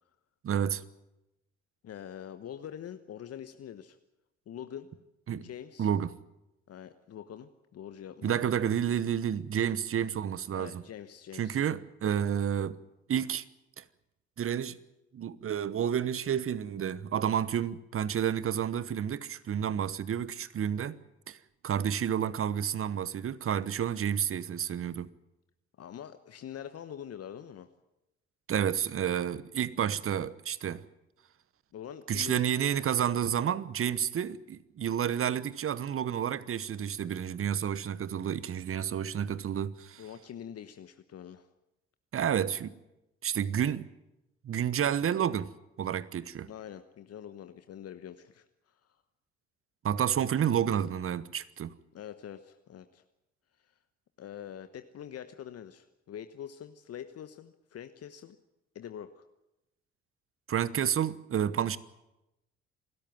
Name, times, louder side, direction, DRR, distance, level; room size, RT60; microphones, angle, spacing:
voice 1, 0.4-0.8 5.3-5.5 5.8-6.2 8.2-10.8 11.4-12.8 13.1-13.4 13.8-13.9 14.4-14.8 15.1-21.0 21.3-21.4 21.6-25.1 28.5-30.8 32.1-40.0 42.1-42.8 43.2-43.9 44.4-45.5 45.8-46.5 49.8-51.7 60.5-61.8, right 9 dB, 40° right, 1.1 m, -30 dB
voice 2, 1.8-4.0 4.5-4.9 5.3-5.9 6.7-8.4 10.5-11.6 25.8-27.7 31.7-32.5 40.0-41.5 46.5-48.8 51.9-53.0 53.6-53.7 54.2-58.4 58.7-59.3, left 9 dB, 50° left, 1.1 m, -44 dB
26.5 x 13.5 x 9.3 m
hypercardioid pair, 50°, 32 cm